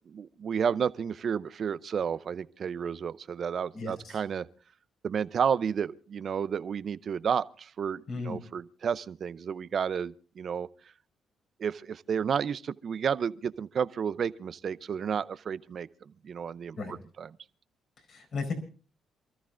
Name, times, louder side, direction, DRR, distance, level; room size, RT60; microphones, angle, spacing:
voice 1, 0.1-4.5 5.0-10.7 11.6-17.3, right 7 dB, 55° right, 0.6 m, -31 dB
voice 2, 3.7-4.2 8.1-8.4 16.8-16.9 18.1-18.5, left 4 dB, 60° left, 4.5 m, -35 dB
27.5 x 14.0 x 2.5 m
cardioid pair, 90°, 0 cm